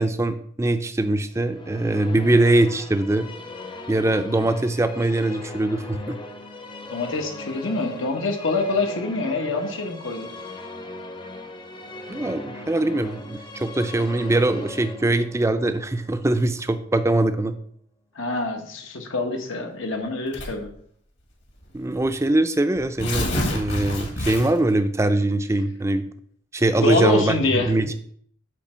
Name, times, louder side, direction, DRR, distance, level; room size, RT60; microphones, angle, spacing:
voice 1, 0.0-3.3 3.9-6.2 12.1-17.5 21.7-26.0 26.5-27.9, right 2 dB, 15° right, 10 dB, 0.4 m, -22 dB
Musical instrument, 1.4-16.8, left 2 dB, 25° left, 0.6 m, -39 dB
voice 2, 6.9-10.3 18.1-20.7 26.8-27.7, left 2 dB, 90° left, 3 dB, 1.3 m, -25 dB
Tearing, 20.3-20.7 21.6-21.7 22.0-22.1 22.8-24.7, left 1 dB, 65° left, 1.9 m, -27 dB
8.3 x 3.3 x 6.2 m, 0.63 s
head